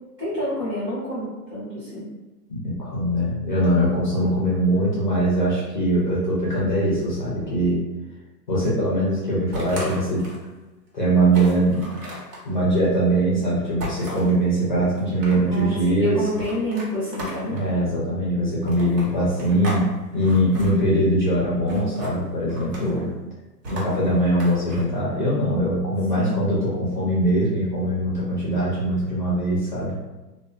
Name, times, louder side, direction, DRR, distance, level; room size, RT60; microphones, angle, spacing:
voice 1, 0.2-2.0 4.2-4.3 15.5-17.6 22.8-23.1 26.1-26.4, left 1 dB, 15° right, -15 dB, 0.6 m, -29 dB
voice 2, 2.5-7.8 8.5-10.3 10.9-11.8 12.4-16.3 17.5-23.1 23.7-30.0, right 1 dB, 30° left, -7 dB, 0.4 m, -22 dB
sound 1, 9.5-10.5 10.9-11.0 11.3-12.4 13.8-14.3 14.9-15.6 16.3-17.7 18.6-19.8 20.1-20.7 21.7-22.1 22.5-23.0 23.6-24.8, equal, 75° right, 1.2 m, -35 dB
2.4 x 2.1 x 2.5 m, 1.1 s
hypercardioid pair, 155°, 50 cm